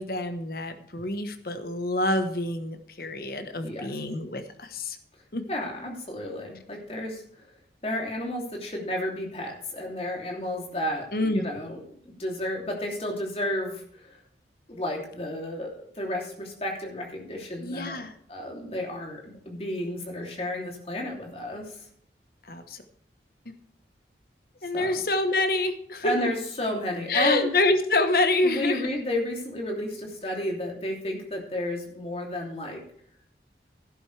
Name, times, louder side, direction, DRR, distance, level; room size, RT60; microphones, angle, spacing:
voice 1, 0.0-5.0 5.3-5.5 11.1-11.4 17.6-18.1 22.5-22.8 24.6-26.3 27.1-28.9, left 2 dB, 55° left, 8 dB, 1.2 m, -27 dB
voice 2, 5.5-7.5 7.8-14.2 14.7-18.0 18.3-21.9 24.7-25.0 26.0-27.5 28.4-32.8, left 1 dB, 35° left, 0 dB, 2.9 m, -32 dB
12.5 x 11.5 x 3.3 m, 0.65 s
head